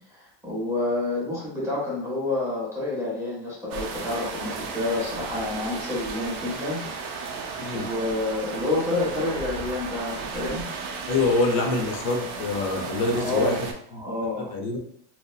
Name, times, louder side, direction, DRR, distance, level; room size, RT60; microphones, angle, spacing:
voice 1, 0.1-10.6 11.0-11.1 13.1-13.6 13.9-14.5, left 2 dB, 5° right, -6 dB, 0.6 m, -29 dB
sound 1, 3.7-13.7, right 4 dB, 50° right, 0.5 m, -34 dB
voice 2, 11.1-13.7 14.4-14.8, left 3 dB, 65° left, 2 dB, 0.6 m, -25 dB
2.6 x 2.1 x 2.3 m, 0.63 s
cardioid pair, 140°, 44 cm